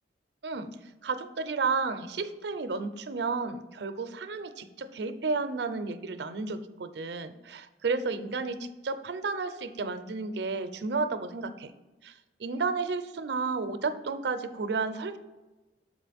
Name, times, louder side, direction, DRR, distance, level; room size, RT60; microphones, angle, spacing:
voice 1, 1.0-11.7 12.0-15.2, right 4 dB, 65° right, 10 dB, 0.5 m, -32 dB
6.7 x 5.1 x 3.5 m, 1.1 s
head